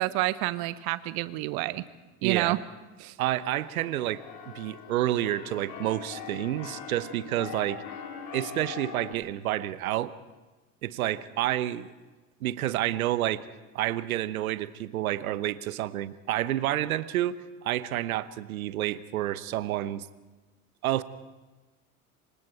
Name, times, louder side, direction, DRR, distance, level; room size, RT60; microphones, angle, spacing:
voice 1, 0.0-1.8 2.2-2.6 3.0-3.1, right 18 dB, 60° right, 15 dB, 1.2 m, -28 dB
voice 2, 2.2-2.6 3.2-7.8 8.3-10.1 10.8-11.9 12.4-13.4 13.7-20.1 20.8-21.0, right 13 dB, 75° right, 16 dB, 1.0 m, -29 dB
Keyboard (musical), 3.3-9.1, left 7 dB, 55° left, 4.4 m, -42 dB
27.5 x 24.5 x 4.6 m, 1.2 s
hypercardioid pair, 70°, 42 cm